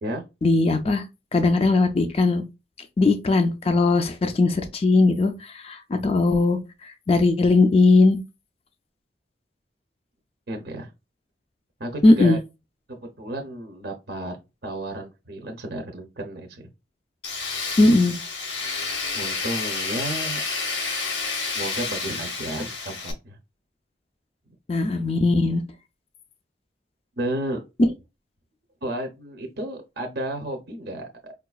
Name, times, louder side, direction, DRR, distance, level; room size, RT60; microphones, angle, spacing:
voice 1, 0.4-1.0 1.3-2.4 3.0-8.2 12.0-12.4 17.8-18.1 24.7-25.6, left 3 dB, 35° left, 0.3 m, -19 dB
voice 2, 10.5-10.9 11.8-12.4 12.9-14.4 14.6-16.6 17.8-18.0 19.1-20.4 21.5-23.4 27.2-27.6 28.8-31.3, right 1 dB, 60° right, 0.6 m, -32 dB
Tools, 17.2-23.1, left 4 dB, 85° left, 0.8 m, -29 dB
4.7 x 2.3 x 2.3 m
head